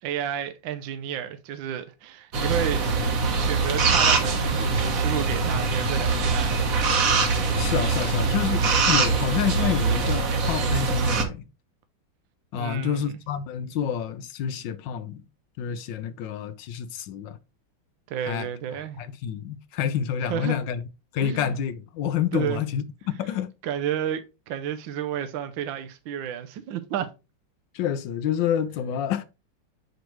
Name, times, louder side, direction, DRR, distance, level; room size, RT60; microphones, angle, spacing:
voice 1, 0.0-2.8 3.4-6.7 12.5-13.1 18.1-19.0 20.2-20.6 21.2-21.5 22.3-22.6 23.6-27.1, right 9 dB, 80° right, 1.3 m, -31 dB
sound 1, 2.3-11.2, right 4 dB, 50° right, 1.3 m, -23 dB
voice 2, 7.6-11.4 12.5-15.2 15.6-17.4 18.2-18.5 19.0-20.8 21.1-23.5 27.7-29.2, left 9 dB, 75° left, 1.2 m, -28 dB
6.1 x 5.1 x 3.1 m
omnidirectional pair, 2.2 m